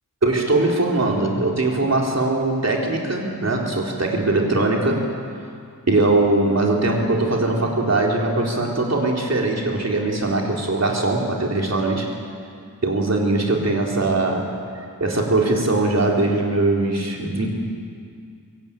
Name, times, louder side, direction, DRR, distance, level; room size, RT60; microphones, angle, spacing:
voice 1, 0.2-5.1 5.9-12.1 12.8-14.6 15.0-17.5, right 2 dB, 45° right, -1 dB, 4.1 m, -21 dB
23.0 x 17.0 x 9.0 m, 2.3 s
wide cardioid pair, 75°, 36 cm